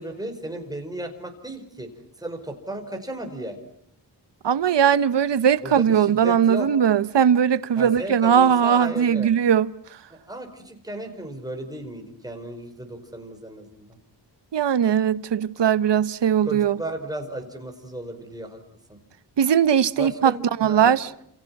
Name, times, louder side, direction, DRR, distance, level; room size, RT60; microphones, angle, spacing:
voice 1, 0.0-1.9 2.2-3.6 5.6-6.7 7.7-9.3 10.1-13.9 16.4-18.6 18.9-19.0 20.0-21.0, right 1 dB, 10° right, 5.1 m, -35 dB
voice 2, 4.4-9.7 14.5-16.8 19.4-20.3 20.6-21.1, right 8 dB, 85° right, 1.0 m, -19 dB
29.5 x 28.5 x 6.0 m
wide cardioid pair, 150°, 42 cm